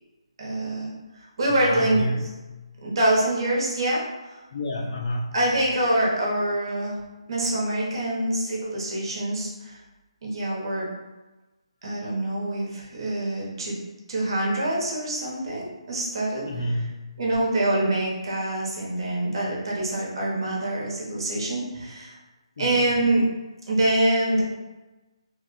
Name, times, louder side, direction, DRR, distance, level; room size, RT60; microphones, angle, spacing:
voice 1, 0.4-0.9 1.4-2.0 2.8-4.4 5.3-7.0 7.3-9.8 10.2-10.8 11.8-13.8 14.1-16.4 17.2-22.1 22.6-23.2 23.7-24.4, right 1 dB, 50° right, -3 dB, 1.3 m, -25 dB
voice 2, 1.5-2.2 4.5-5.4 16.4-16.9 21.7-21.9 22.6-22.9, equal, 60° left, -1 dB, 0.9 m, -29 dB
3.2 x 2.5 x 4.2 m, 1.1 s
hypercardioid pair, 165°, 3 cm